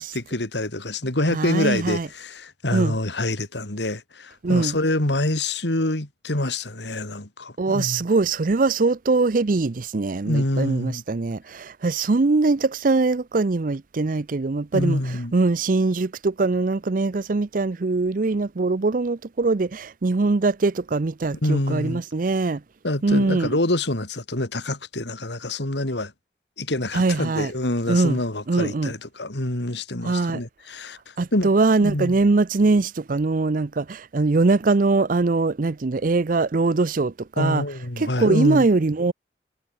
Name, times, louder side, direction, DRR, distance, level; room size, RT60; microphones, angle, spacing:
voice 1, 0.0-8.0 10.3-11.0 14.7-15.3 21.3-22.0 22.8-26.1 26.6-31.5 31.8-32.2 37.4-38.7, left 1 dB, 75° left, 2.9 m, -26 dB
voice 2, 1.3-2.1 2.7-3.0 4.4-4.8 7.6-22.6 23.0-23.6 26.9-27.5 27.9-28.2 28.5-28.9 30.0-30.4 31.2-37.6 38.0-39.1, right 3 dB, 50° right, 0.6 m, -22 dB
head